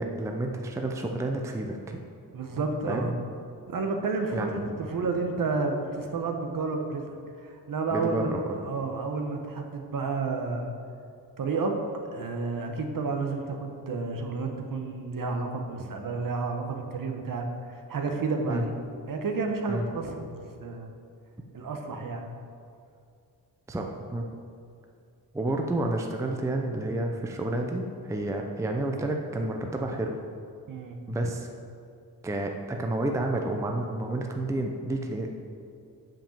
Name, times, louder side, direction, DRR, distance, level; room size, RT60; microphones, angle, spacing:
voice 1, 0.0-2.0 2.9-3.1 4.3-4.6 7.9-8.6 18.5-18.6 19.7-19.9 23.7-24.3 25.3-30.1 31.1-31.5 32.2-35.3, right 2 dB, 10° right, 3 dB, 0.5 m, -30 dB
voice 2, 2.3-3.1 3.7-8.3 8.6-10.7 11.4-11.7 12.1-18.7 19.1-20.9 21.5-22.3 30.7-31.0, right 4 dB, 55° right, 4 dB, 1.1 m, -31 dB
8.8 x 5.2 x 7.2 m, 2.4 s
wide cardioid pair, 150°, 40 cm